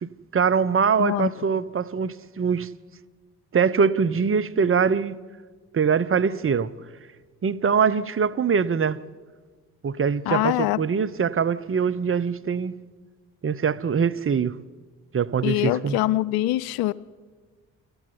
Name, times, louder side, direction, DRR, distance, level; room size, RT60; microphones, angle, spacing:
voice 1, 0.0-2.7 3.5-5.2 5.7-6.7 7.4-9.0 9.8-12.8 13.4-14.6 15.1-16.0, right 6 dB, 35° right, 0.9 m, -23 dB
voice 2, 1.0-1.3 10.3-10.8 15.4-16.9, left 15 dB, 70° left, 0.7 m, -23 dB
25.5 x 14.0 x 9.7 m
hypercardioid pair, 45°, 38 cm